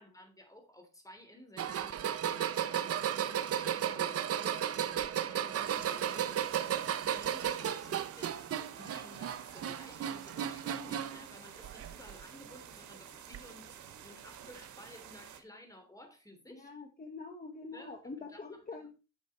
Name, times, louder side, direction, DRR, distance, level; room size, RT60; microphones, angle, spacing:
voice 1, 0.0-16.7 17.7-17.9 18.3-18.4 18.8-18.9, left 1 dB, 10° left, 3.2 m, -54 dB
sound 1, 1.6-11.2 11.6-12.2 13.3-13.4 14.5-14.6, right 10 dB, 50° right, 0.8 m, -34 dB
sound 2, 5.6-15.4, right 9 dB, 70° right, 1.6 m, -51 dB
voice 2, 16.5-18.9, left 3 dB, 30° left, 1.6 m, -45 dB
9.4 x 6.4 x 4.2 m
cardioid pair, 90°, 30 cm